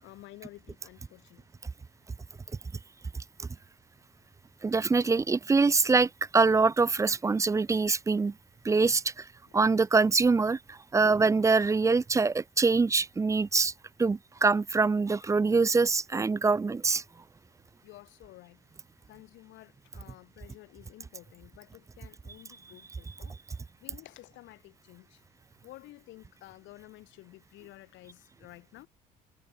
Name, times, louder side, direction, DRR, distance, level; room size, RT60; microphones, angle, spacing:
voice 1, 0.0-1.5 9.5-9.7 17.8-18.6 19.1-23.3 23.8-25.2 25.6-28.9, left 17 dB, 65° left, 6.8 m, -52 dB
voice 2, 3.1-3.5 4.6-8.3 8.6-9.3 9.5-13.7 14.0-17.0, right 4 dB, 15° right, 0.4 m, -24 dB
hypercardioid pair, 55°, 21 cm